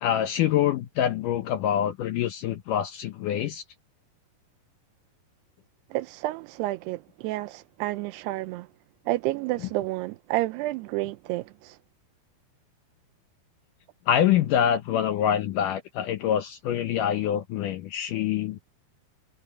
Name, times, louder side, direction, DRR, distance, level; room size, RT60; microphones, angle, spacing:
voice 1, 0.0-3.6 14.1-18.6, left 10 dB, 75° left, 2.0 m, -25 dB
voice 2, 5.9-8.7 9.1-11.8, right 18 dB, 90° right, 2.7 m, -30 dB
omnidirectional pair, 4.7 m